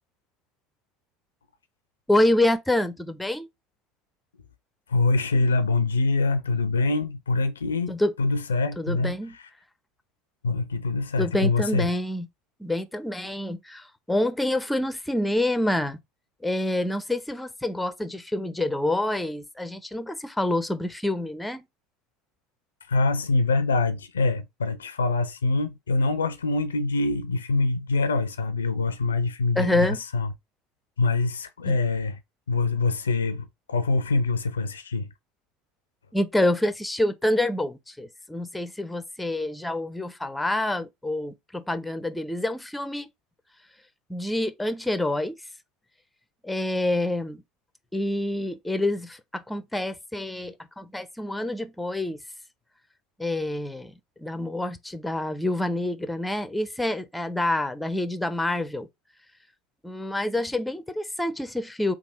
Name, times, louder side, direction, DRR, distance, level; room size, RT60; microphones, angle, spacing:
voice 1, 2.1-3.5 7.9-8.1 8.8-9.3 11.2-12.3 12.6-16.0 16.4-21.6 29.6-30.0 31.7-31.8 36.1-43.1 44.1-45.4 46.4-47.4 47.9-52.2 53.2-53.9 54.2-58.9 59.8-61.9, left 1 dB, 5° left, 0.6 m, -27 dB
voice 2, 4.9-9.1 10.4-11.9 22.9-30.3 31.0-32.2 32.5-35.1, left 3 dB, 85° left, 0.4 m, -24 dB
3.5 x 2.4 x 4.0 m
figure-of-eight pair, 70°, 0 cm